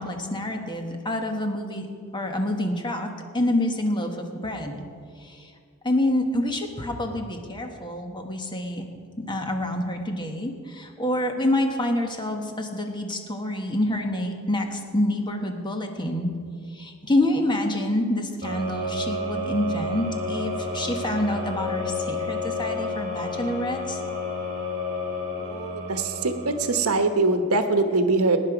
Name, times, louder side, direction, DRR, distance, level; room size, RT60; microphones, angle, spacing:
voice 1, 0.0-1.9 2.1-3.1 3.3-4.9 5.2-5.5 5.8-8.9 9.3-16.3 16.7-24.0, left 1 dB, 20° left, 3 dB, 1.3 m, -27 dB
sound 1, 18.4-27.3, left 2 dB, 35° right, 4.1 m, -31 dB
voice 2, 25.4-28.4, right 3 dB, 75° right, 7 dB, 1.1 m, -23 dB
18.5 x 9.9 x 5.0 m, 2.2 s
head